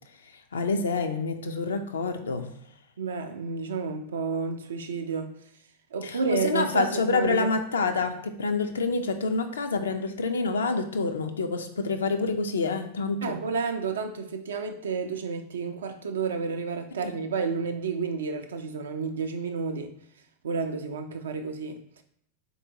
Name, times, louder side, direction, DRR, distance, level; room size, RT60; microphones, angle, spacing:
voice 1, 0.5-2.5 6.0-13.4 17.0-17.1, left 4 dB, 70° left, 0.3 m, -27 dB
voice 2, 3.0-5.3 5.9-7.5 13.2-19.9 20.4-22.0, right 5 dB, 65° right, 0.3 m, -31 dB
3.7 x 2.6 x 2.7 m
figure-of-eight pair, 90°, 0 cm